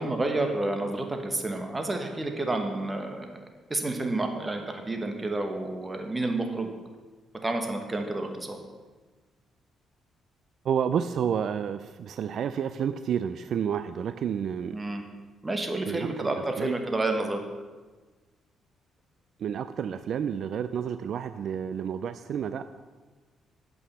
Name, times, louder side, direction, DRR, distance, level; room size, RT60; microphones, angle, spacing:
voice 1, 0.0-6.7 7.4-8.6 14.7-15.0 15.4-17.4, right 2 dB, 20° right, 4 dB, 1.4 m, -30 dB
voice 2, 10.6-14.8 15.9-16.3 16.6-16.7 19.4-22.6, right 8 dB, 65° right, 11 dB, 0.3 m, -30 dB
8.4 x 5.5 x 7.0 m, 1.3 s
cardioid pair, 90°, 0 cm